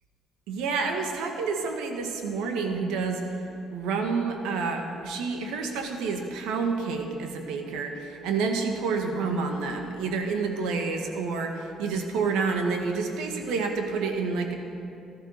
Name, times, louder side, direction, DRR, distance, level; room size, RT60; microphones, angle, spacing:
voice 1, 0.5-3.2 3.7-14.5, right 4 dB, 85° right, 3 dB, 1.7 m, -29 dB
15.5 x 11.5 x 6.6 m, 2.7 s
supercardioid pair, 70°, 0 cm